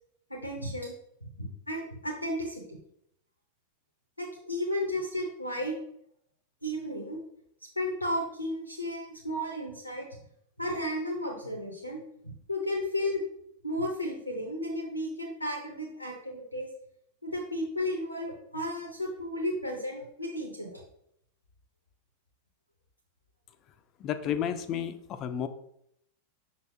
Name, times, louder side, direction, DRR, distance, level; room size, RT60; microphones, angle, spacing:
voice 1, 0.3-0.9 1.2-2.8 4.2-5.8 6.6-7.2 7.8-10.1 10.6-13.2 13.6-16.7 17.2-20.8, left 1 dB, 85° left, 1 dB, 0.9 m, -33 dB
voice 2, 24.0-25.5, left 9 dB, 35° left, 10 dB, 0.5 m, -32 dB
6.0 x 5.5 x 2.8 m, 0.74 s
figure-of-eight pair, 90°, 0 cm